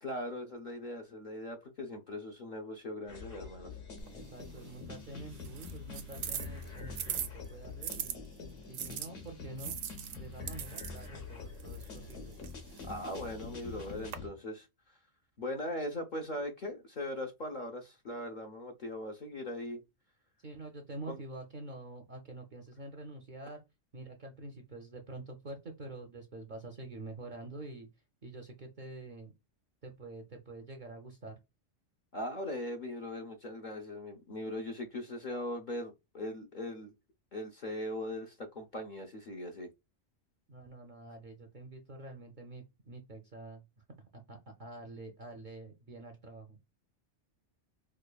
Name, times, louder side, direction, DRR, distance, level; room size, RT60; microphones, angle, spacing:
voice 1, 0.0-3.7 12.8-14.7 15.4-19.8 21.1-21.2 32.1-36.9 37.3-39.7, left 1 dB, 50° left, 0.6 m, -40 dB
sound 1, 3.1-14.3, left 4 dB, 80° left, 1.6 m, -46 dB
sound 2, 4.0-8.2 8.7-14.2, right 9 dB, 90° right, 1.0 m, -43 dB
voice 2, 4.1-8.2 8.7-9.8 10.1-12.4 20.4-23.6 23.9-27.9 28.2-29.3 29.8-31.4 40.5-43.6 44.1-46.6, right 2 dB, 55° right, 0.5 m, -47 dB
4.9 x 2.3 x 2.3 m
omnidirectional pair, 1.3 m